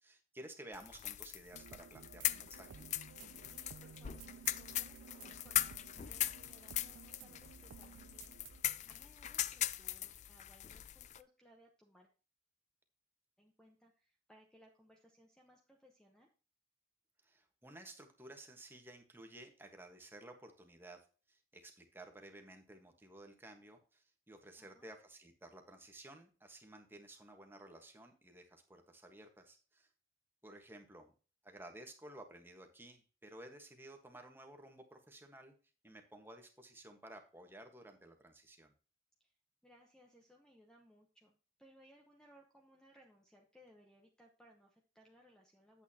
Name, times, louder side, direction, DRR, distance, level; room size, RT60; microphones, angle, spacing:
voice 1, 0.0-2.9 17.2-29.9 30.4-31.1 31.4-35.5 35.8-38.7, right 1 dB, 10° right, 4 dB, 1.3 m, -55 dB
sound 1, 0.7-11.2, left 13 dB, 40° left, 0.3 m, -40 dB
sound 2, 1.5-8.6, right 7 dB, 85° right, 0.4 m, -55 dB
voice 2, 3.1-8.4 8.9-12.1 13.4-16.3 24.5-24.9 39.2-39.3 39.6-45.8, equal, 5° left, 1 dB, 0.9 m, -65 dB
9.0 x 8.0 x 2.8 m, 0.37 s
head